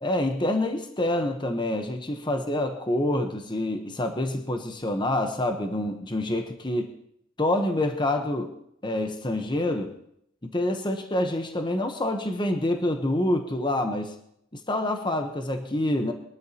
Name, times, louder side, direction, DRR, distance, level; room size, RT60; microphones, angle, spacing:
voice 1, 0.0-6.9 7.4-8.5 8.8-9.9 10.4-14.1 14.5-16.1, left 1 dB, 25° left, 5 dB, 1.0 m, -27 dB
22.5 x 12.0 x 2.9 m, 0.72 s
head